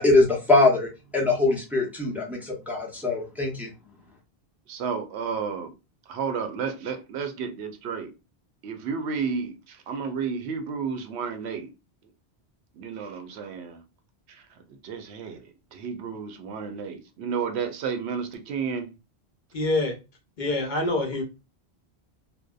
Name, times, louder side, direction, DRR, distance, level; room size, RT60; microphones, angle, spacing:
voice 1, 0.0-3.7, left 2 dB, ahead, 0.5 m, -22 dB
voice 2, 4.7-5.7 6.1-8.1 8.6-11.7 12.8-13.8 14.3-14.4 14.7-18.9, right 6 dB, 90° right, 0.8 m, -32 dB
voice 3, 19.5-19.9 20.4-21.2, left 2 dB, 55° left, 0.7 m, -25 dB
2.6 x 2.1 x 2.2 m
omnidirectional pair, 1.1 m